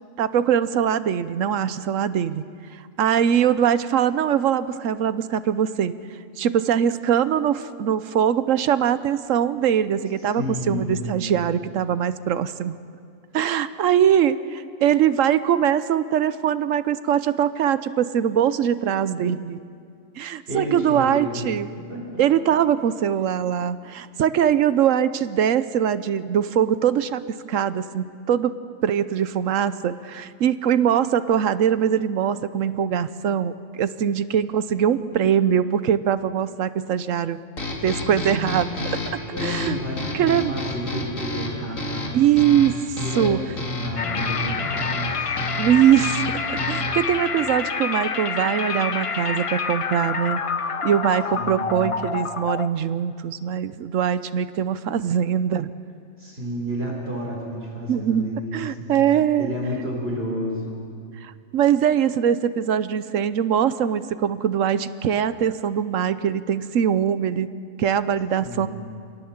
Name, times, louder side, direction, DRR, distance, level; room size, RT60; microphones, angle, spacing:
voice 1, 0.2-2.4 2.7-5.9 6.4-12.8 13.3-19.6 20.2-21.7 22.2-28.5 28.8-37.4 37.8-38.7 39.1-39.8 40.1-40.5 42.1-42.8 43.2-43.4 45.6-50.4 50.8-55.7 57.9-59.5 61.2-68.7, right 9 dB, 70° right, 14 dB, 1.1 m, -22 dB
voice 2, 10.3-11.1 20.5-21.5 21.9-22.2 34.9-35.2 38.1-38.8 39.3-42.1 43.0-45.3 51.3-51.9 56.2-59.0 59.4-60.8 68.4-68.7, left 1 dB, 45° right, -1 dB, 4.4 m, -31 dB
sound 1, 37.6-47.1, left 1 dB, 70° left, 2.7 m, -31 dB
sound 2, 44.0-52.7, left 5 dB, 40° left, 0.5 m, -27 dB
27.0 x 18.0 x 7.3 m, 2.3 s
omnidirectional pair, 1.4 m